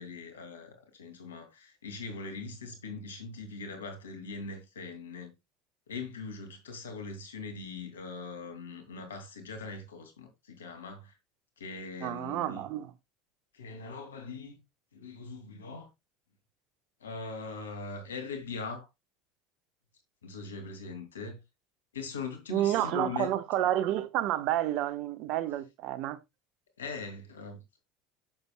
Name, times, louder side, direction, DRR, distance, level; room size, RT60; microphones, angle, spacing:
voice 1, 0.0-5.3 5.9-11.1 11.6-12.6 13.5-14.6 14.9-15.9 17.0-18.9 20.2-21.4 21.9-23.3 26.8-27.8, left 4 dB, 90° left, 2.6 m, -41 dB
voice 2, 12.0-12.9 22.5-26.2, right 12 dB, 60° right, 1.1 m, -30 dB
10.5 x 7.2 x 2.3 m
hypercardioid pair, 80°, 0 cm